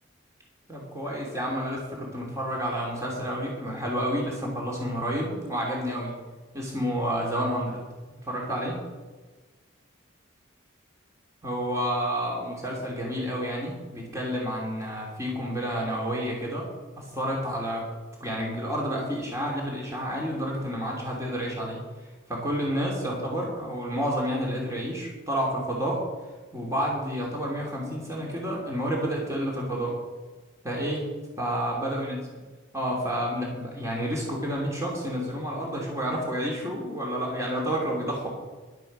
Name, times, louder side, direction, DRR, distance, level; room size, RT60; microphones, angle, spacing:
voice 1, 0.7-6.2 6.5-7.8 8.2-8.8 11.4-16.7 17.0-17.9 18.2-26.1 26.5-30.0 30.6-31.1 31.4-32.2 32.7-38.3, equal, 15° right, -3 dB, 2.9 m, -30 dB
15.0 x 11.5 x 5.4 m, 1.3 s
head